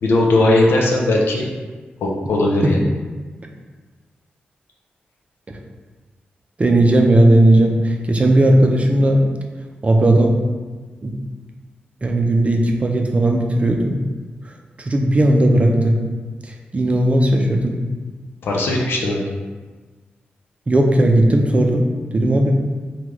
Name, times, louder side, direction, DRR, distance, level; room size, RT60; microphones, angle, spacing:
voice 1, 0.0-1.5 2.0-2.8 18.4-19.2, left 2 dB, 85° left, -1 dB, 0.5 m, -18 dB
voice 2, 6.6-9.2 9.8-10.3 11.0-11.1 12.0-14.0 14.8-16.0 16.4-17.8 20.7-21.9 22.1-22.5, right 1 dB, 35° right, 2 dB, 0.5 m, -16 dB
3.5 x 2.3 x 3.0 m, 1.4 s
cardioid pair, 60°, 4 cm